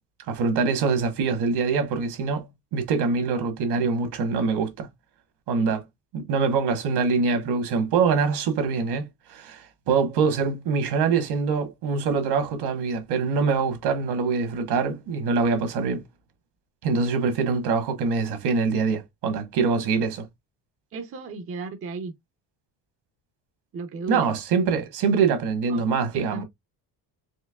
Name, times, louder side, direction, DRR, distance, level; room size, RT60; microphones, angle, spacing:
voice 1, 0.3-4.9 5.5-5.8 6.1-9.0 9.3-16.0 16.8-20.3 24.1-26.4, right 5 dB, 70° right, 1.4 m, -24 dB
voice 2, 20.9-22.1 23.7-24.3 25.7-25.8 26.1-26.4, right 5 dB, 35° right, 0.6 m, -34 dB
4.5 x 2.9 x 2.2 m
cardioid pair, 140°, 41 cm